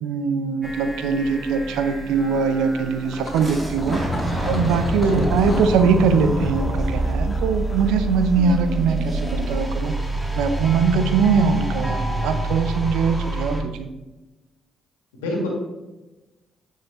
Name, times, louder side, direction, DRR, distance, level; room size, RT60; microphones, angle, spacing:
voice 1, 0.0-4.0 4.4-10.0 10.3-13.9, right 5 dB, 75° right, 9 dB, 0.7 m, -21 dB
sound 1, 0.6-13.6, right 2 dB, 10° right, 1.8 m, -28 dB
sound 2, 3.0-8.8, left 2 dB, 25° left, 1.9 m, -36 dB
Fire / Explosion, 3.4-9.3, right 1 dB, 30° right, 2.1 m, -28 dB
voice 2, 5.0-5.3 15.2-15.5, left 1 dB, 85° left, 0 dB, 1.8 m, -26 dB
9.4 x 6.5 x 3.0 m, 1.1 s
hypercardioid pair, 45°, 0 cm